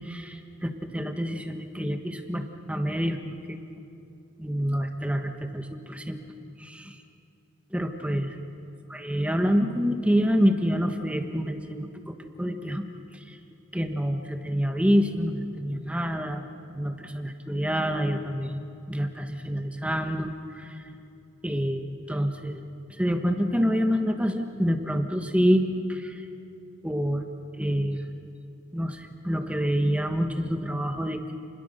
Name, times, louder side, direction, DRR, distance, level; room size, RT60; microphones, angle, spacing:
voice 1, 0.0-3.2 3.5-3.6 4.4-6.2 6.6-7.0 7.7-8.3 8.9-12.8 13.1-13.4 13.7-16.4 16.7-18.6 18.9-20.8 21.4-22.6 23.0-26.2 26.8-27.2 27.6-28.0 28.7-31.3, equal, 5° right, 5 dB, 1.3 m, -27 dB
30.0 x 22.0 x 6.7 m, 2.7 s
head